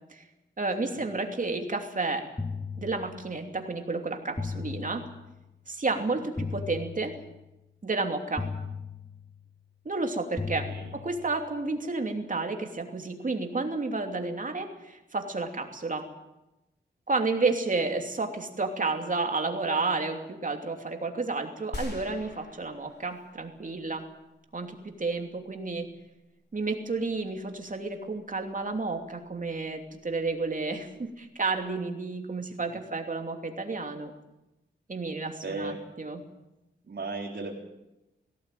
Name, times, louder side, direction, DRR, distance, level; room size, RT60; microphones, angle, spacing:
voice 1, 0.6-2.3 2.8-5.0 5.7-7.1 7.8-8.5 9.8-16.1 17.1-24.1 24.5-25.9 26.5-34.1 34.9-36.2, right 3 dB, 40° right, 4 dB, 2.9 m, -31 dB
sound 1, 2.4-3.6 4.4-5.6 6.4-7.6 8.4-9.6 10.4-11.6, left 4 dB, 15° left, 1.0 m, -37 dB
voice 2, 5.9-6.2 10.7-11.0 35.4-35.8 36.8-37.5, right 3 dB, 60° right, -4 dB, 3.6 m, -37 dB
sound 2, 21.7-24.0, left 1 dB, 60° left, 4.8 m, -41 dB
19.0 x 16.5 x 9.2 m, 0.97 s
wide cardioid pair, 110°, 20 cm